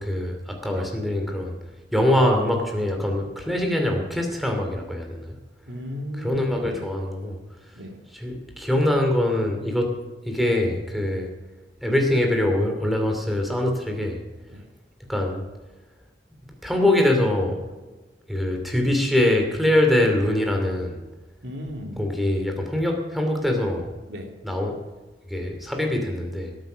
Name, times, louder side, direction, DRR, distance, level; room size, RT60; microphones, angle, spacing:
voice 1, 0.0-1.5 1.9-5.4 6.2-7.4 8.1-9.9 10.2-11.3 11.8-14.2 15.1-15.4 16.4-17.8 18.3-21.0 22.0-23.9 24.4-24.8 25.3-26.5, left 1 dB, ahead, 2 dB, 2.5 m, -23 dB
voice 2, 5.6-6.9 7.7-8.0 14.5-14.6 21.4-22.1 24.1-24.3, equal, 70° right, 1 dB, 3.1 m, -36 dB
18.0 x 8.9 x 6.3 m, 1.2 s
head